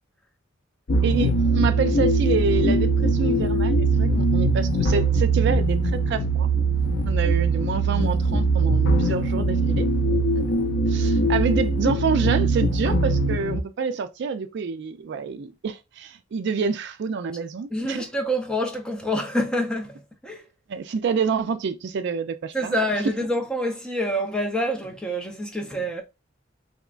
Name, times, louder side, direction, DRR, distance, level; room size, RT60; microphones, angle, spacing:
sound 1, 0.9-13.6, right 2 dB, 75° left, 0.6 m, -21 dB
voice 1, 1.0-6.5 7.0-9.9 10.3-10.4 10.9-18.0 20.7-22.8, right 5 dB, 60° right, 0.4 m, -27 dB
voice 2, 17.7-20.5 22.5-26.0, equal, 5° left, 0.6 m, -27 dB
3.5 x 2.9 x 2.4 m
head